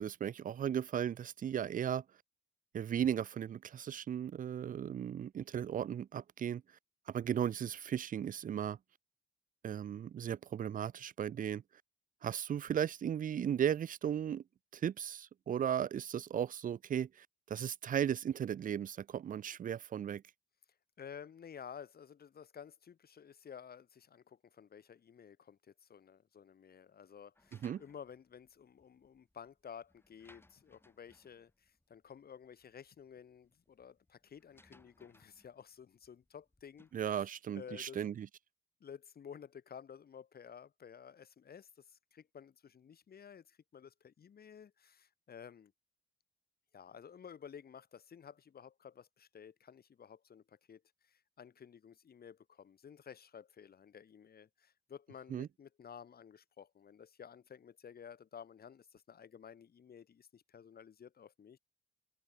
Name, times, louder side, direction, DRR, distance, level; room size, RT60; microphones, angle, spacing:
voice 1, 0.0-2.0 2.7-6.6 7.1-8.8 9.6-11.6 12.2-14.4 14.7-20.2 27.6-27.8 36.9-38.3 55.3-55.5, right 9 dB, 45° right, 0.6 m, -36 dB
voice 2, 21.0-37.2 37.5-38.2 38.8-45.7 46.7-61.6, left 7 dB, 50° left, 4.1 m, -53 dB
sound 1, 27.4-37.1, left 2 dB, 10° left, 6.2 m, -68 dB
cardioid pair, 90°, 20 cm